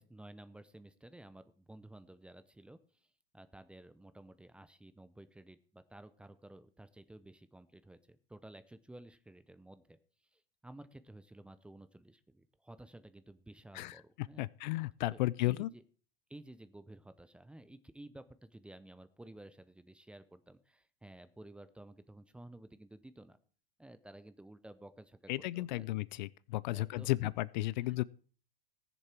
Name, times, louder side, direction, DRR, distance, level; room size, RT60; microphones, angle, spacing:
voice 1, 0.0-3.1 3.3-10.0 10.3-14.5 15.1-15.8 16.3-23.4 23.8-25.9 26.7-27.3 27.8-28.0, right 1 dB, 5° right, 0.6 m, -54 dB
voice 2, 14.4-15.7 25.3-28.0, left 18 dB, 50° left, 0.4 m, -34 dB
19.0 x 6.9 x 4.4 m
hypercardioid pair, 130°, 29 cm